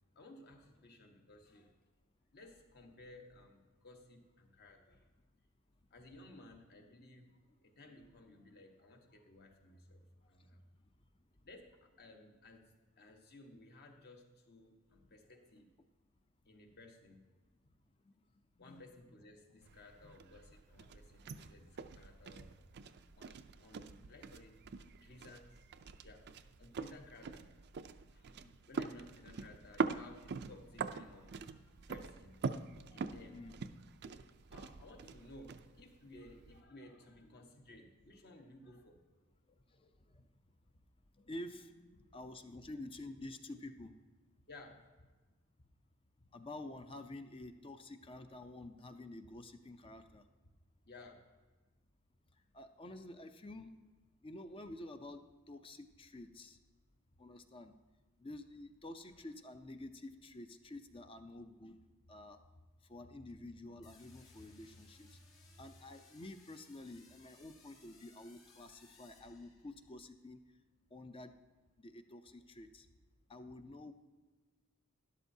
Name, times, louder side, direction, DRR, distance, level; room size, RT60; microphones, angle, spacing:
voice 1, 0.1-1.8 2.3-5.1 5.9-10.6 11.4-15.7 16.4-17.2 18.6-22.5 23.2-25.5 26.0-26.3 26.6-27.5 28.1-28.4 28.7-33.5 34.0-39.0 44.5-44.9 50.8-51.4, left 2 dB, 50° left, 3 dB, 1.2 m, -57 dB
sound 1, 19.6-36.6, right 5 dB, 50° right, 0.4 m, -44 dB
voice 2, 41.2-43.9 46.3-50.2 52.5-53.8 54.2-56.6 57.2-57.7 58.2-61.7 62.1-62.4 62.9-65.2 65.6-70.4 70.9-71.3 71.8-72.9 73.3-73.9, left 1 dB, 25° left, 8 dB, 0.5 m, -49 dB
sound 2, 63.8-70.0, left 4 dB, 65° left, 2.3 m, -65 dB
12.5 x 11.0 x 2.7 m, 1.3 s
head